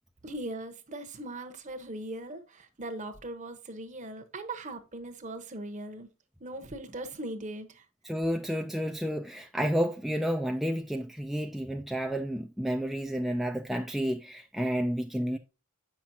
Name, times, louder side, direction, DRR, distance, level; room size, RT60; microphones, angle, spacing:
voice 1, 0.2-6.1 6.4-7.8, right 1 dB, 35° right, 1.0 m, -39 dB
voice 2, 8.0-15.4, equal, ahead, 0.4 m, -30 dB
8.4 x 5.9 x 2.7 m
head